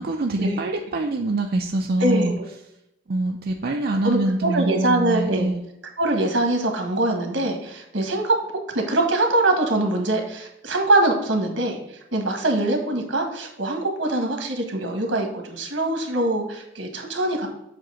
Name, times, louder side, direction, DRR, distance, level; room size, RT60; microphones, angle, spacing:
voice 1, 0.0-2.4 3.1-5.6, right 2 dB, 55° right, 3 dB, 0.5 m, -24 dB
voice 2, 2.0-2.3 4.0-5.5 6.0-8.3 8.7-11.8 12.1-17.5, right 2 dB, 80° right, 3 dB, 1.5 m, -23 dB
7.6 x 2.9 x 5.7 m, 0.84 s
head